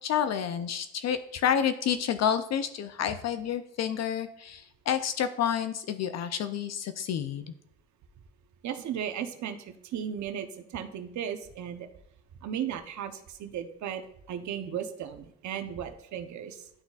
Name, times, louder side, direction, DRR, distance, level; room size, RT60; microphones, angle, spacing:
voice 1, 0.0-7.5, left 8 dB, 60° left, 10 dB, 0.5 m, -29 dB
voice 2, 8.6-11.9 12.4-14.0 14.3-16.7, right 9 dB, 70° right, 8 dB, 0.8 m, -36 dB
11.5 x 3.9 x 2.4 m, 0.75 s
cardioid pair, 90°, 30 cm